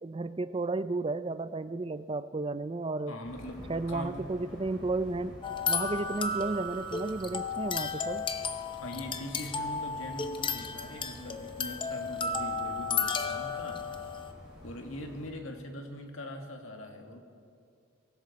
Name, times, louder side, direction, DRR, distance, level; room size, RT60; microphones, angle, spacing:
voice 1, 0.0-3.2 3.7-5.4 5.7-8.3, right 3 dB, 25° right, 14 dB, 0.4 m, -33 dB
voice 2, 3.1-4.3 8.7-14.1 14.6-17.2, left 1 dB, 80° left, 3 dB, 1.8 m, -42 dB
sound 1, 3.2-15.3, equal, 5° right, 5.3 m, -50 dB
sound 2, 5.4-14.3, left 4 dB, 25° left, 0.6 m, -34 dB
23.5 x 15.0 x 4.2 m, 2.4 s
head